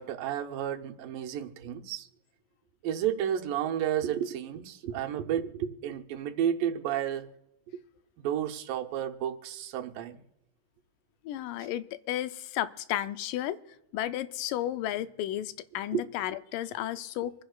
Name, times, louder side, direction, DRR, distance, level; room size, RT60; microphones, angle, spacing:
voice 1, 0.0-2.1 2.8-7.3 8.2-10.2 15.9-16.1, right 10 dB, 90° right, 2.6 m, -31 dB
voice 2, 11.3-13.6 13.9-17.4, left 13 dB, 85° left, 2.2 m, -33 dB
26.0 x 10.5 x 2.4 m
omnidirectional pair, 3.8 m